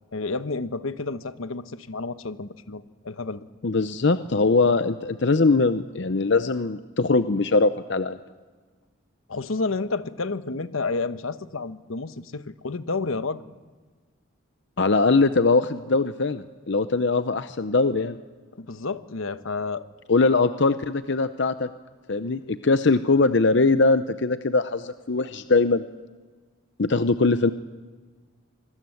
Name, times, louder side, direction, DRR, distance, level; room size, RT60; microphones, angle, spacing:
voice 1, 0.1-3.4 9.3-13.4 18.5-19.9, left 3 dB, 80° left, 12 dB, 1.0 m, -30 dB
voice 2, 3.6-8.2 14.8-18.2 20.1-21.7 22.1-25.8 26.8-27.5, left 3 dB, 55° left, 11 dB, 0.7 m, -21 dB
26.0 x 19.5 x 7.9 m, 1.4 s
head